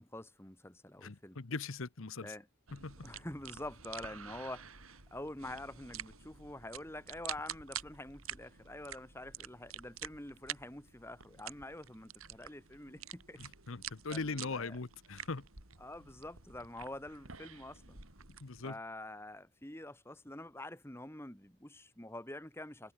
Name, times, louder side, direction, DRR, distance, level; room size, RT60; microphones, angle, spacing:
voice 1, 0.0-1.4 2.2-2.5 3.0-13.4 14.1-14.8 15.8-18.0 18.6-22.9, left 1 dB, 10° left, 1.9 m, -46 dB
voice 2, 1.0-2.3 2.7-3.0 13.4-15.5 18.4-18.8, left 3 dB, 75° left, 1.0 m, -40 dB
sound 1, 2.7-18.7, right 9 dB, 85° right, 4.1 m, -48 dB
head